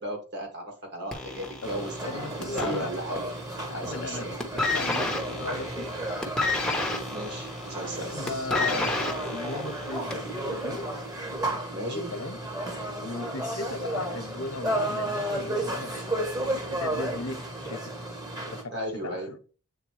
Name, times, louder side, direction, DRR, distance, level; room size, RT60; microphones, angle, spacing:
voice 1, 0.0-3.3 3.7-4.4 6.0-6.1 6.9-8.2 11.7-12.1 18.7-19.3, right 1 dB, 50° right, 2.1 m, -36 dB
sound 1, 1.1-3.4 3.7-4.1 4.4-10.4 11.2-11.3, left 2 dB, 5° left, 0.9 m, -30 dB
sound 2, 1.6-18.6, right 1 dB, 15° right, 1.2 m, -33 dB
voice 2, 2.1-3.0 3.7-6.0 8.0-11.0 11.9-12.4 13.0-16.2 16.7-17.9 18.5-19.4, left 3 dB, 75° left, 0.9 m, -37 dB
8.0 x 3.7 x 3.2 m
head